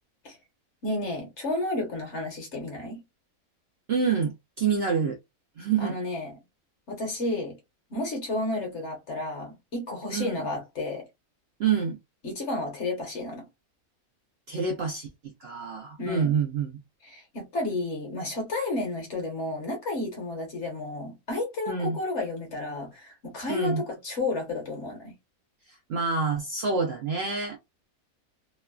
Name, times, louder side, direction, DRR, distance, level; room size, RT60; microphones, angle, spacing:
voice 1, 0.8-3.0 5.8-6.3 6.9-7.6 7.9-11.1 12.2-13.4 16.0-16.3 17.0-25.1, left 2 dB, 55° left, 1.3 m, -32 dB
voice 2, 3.9-4.3 4.6-5.2 5.6-6.0 10.1-10.4 11.6-12.0 14.5-16.8 21.7-22.0 23.5-23.8 25.7-27.6, right 5 dB, 60° right, 0.7 m, -27 dB
3.1 x 2.2 x 2.2 m
omnidirectional pair, 1.5 m